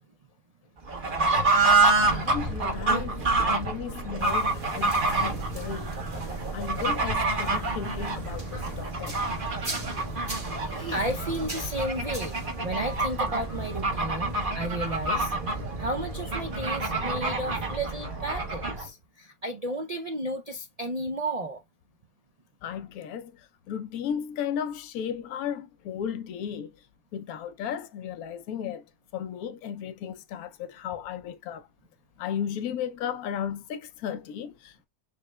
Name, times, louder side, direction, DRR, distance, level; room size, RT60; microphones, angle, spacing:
Fowl / Bird, 0.8-18.9, right 3 dB, 40° right, 1.1 m, -28 dB
voice 1, 2.0-5.9 6.5-9.1 22.6-23.3 23.7-26.7 27.1-28.8 29.1-31.6 32.2-34.9, left 8 dB, 85° left, 1.1 m, -35 dB
sound 1, 4.2-17.8, equal, 20° right, 1.1 m, -40 dB
voice 2, 10.6-12.3 12.6-21.6, right 1 dB, 75° right, 0.3 m, -33 dB
6.4 x 3.2 x 2.2 m
omnidirectional pair, 1.5 m